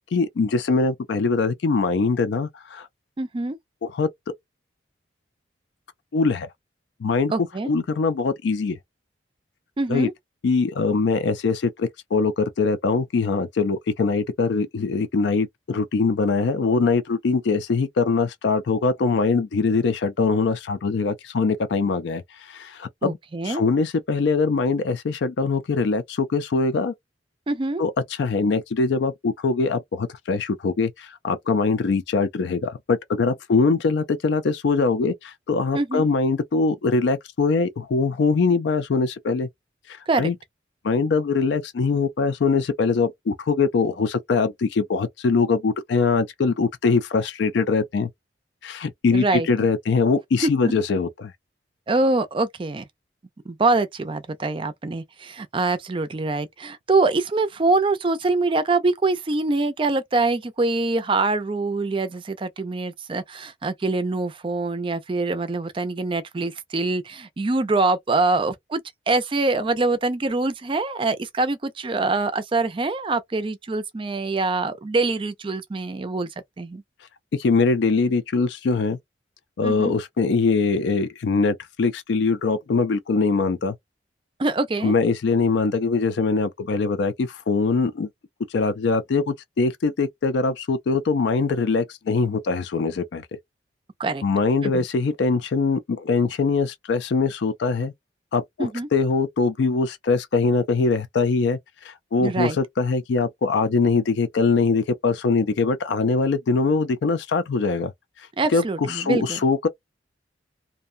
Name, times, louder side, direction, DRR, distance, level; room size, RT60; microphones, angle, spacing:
voice 1, 0.1-2.9 3.8-4.1 6.1-6.5 7.0-7.3 7.6-8.8 9.9-10.1 10.4-23.2 23.4-26.9 27.8-39.5 39.9-40.3 40.8-48.1 48.6-51.3 77.3-79.0 79.6-83.8 84.8-88.1 88.5-93.3 94.2-97.9 98.3-107.9 108.2-109.7, left 4 dB, 70° left, 0.4 m, -22 dB
voice 2, 3.2-3.6 7.3-7.7 9.8-10.1 23.0-23.6 27.5-27.8 35.7-36.1 40.1-40.3 49.1-49.5 50.4-50.7 51.9-52.8 53.5-76.3 76.6-76.8 79.6-79.9 84.4-84.9 94.0-94.2 94.6-94.9 98.6-98.9 102.2-102.6 108.4-109.4, right 3 dB, 30° right, 0.4 m, -24 dB
2.5 x 2.1 x 2.5 m
head